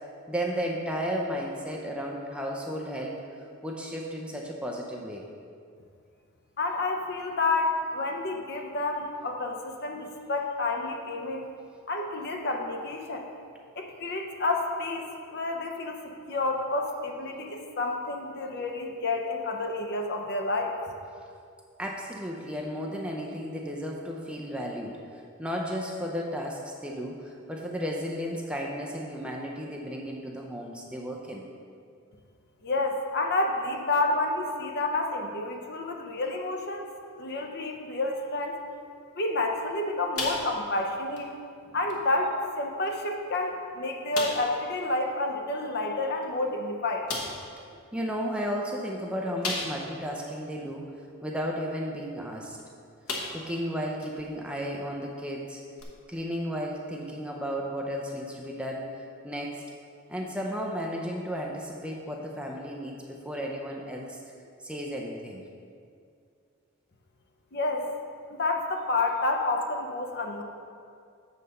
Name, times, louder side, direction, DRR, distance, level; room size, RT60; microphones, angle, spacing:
voice 1, 0.3-3.2 3.6-5.2 21.8-31.5 47.9-51.0 51.2-52.6 53.3-55.6 56.1-59.6 60.1-64.2 64.6-65.4, equal, 5° right, -1 dB, 0.5 m, -34 dB
voice 2, 6.6-11.5 11.9-13.3 13.8-20.7 32.6-36.9 37.1-38.6 39.2-41.3 41.7-47.1 67.5-67.9 68.3-70.4, left 2 dB, 50° left, 3 dB, 0.7 m, -29 dB
sound 1, 40.1-40.8 41.1-41.3 41.9-42.0 42.8-42.9 43.3-43.4 44.1-44.6 46.2-46.3 47.1-47.5 49.4-50.0 50.5-50.6 52.4-52.6 53.1-53.6 54.0-54.1 55.8-55.9, left 3 dB, 85° left, 1.2 m, -34 dB
7.6 x 4.1 x 6.5 m, 2.4 s
head